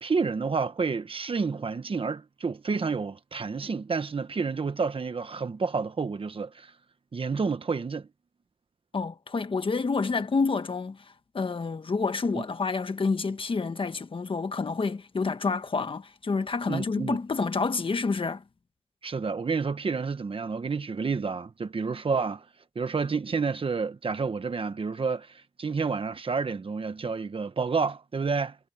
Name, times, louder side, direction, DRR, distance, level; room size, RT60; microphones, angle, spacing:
voice 1, 0.0-6.7 7.1-8.1 12.3-12.4 16.7-17.2 19.0-22.4 22.7-28.6, right 5 dB, 70° right, 1.4 m, -29 dB
voice 2, 8.9-18.4, left 4 dB, 65° left, 1.4 m, -28 dB
cardioid pair, 55°, 10 cm